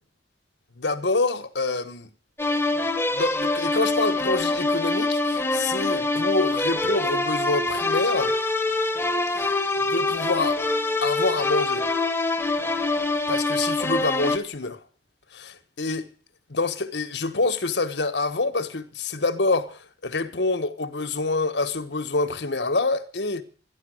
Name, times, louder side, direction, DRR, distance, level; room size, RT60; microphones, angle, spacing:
voice 1, 0.8-2.1 3.1-8.3 9.4-10.6 11.0-11.9 13.3-14.8 15.3-16.1 16.5-23.4, left 3 dB, 85° left, 1.4 m, -26 dB
sound 1, 2.4-14.4, left 2 dB, 15° left, 1.0 m, -25 dB
13.5 x 11.0 x 7.8 m
head